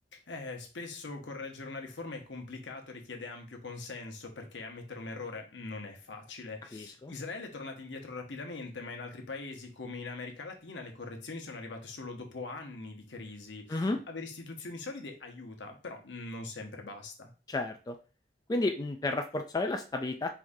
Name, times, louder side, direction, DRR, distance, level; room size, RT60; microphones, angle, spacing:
voice 1, 0.1-17.3, left 3 dB, 75° left, 3 dB, 0.9 m, -42 dB
voice 2, 6.7-7.1 13.7-14.0 17.5-18.0 18.5-20.3, left 2 dB, 20° left, 4 dB, 0.3 m, -32 dB
4.6 x 3.6 x 2.6 m, 0.34 s
head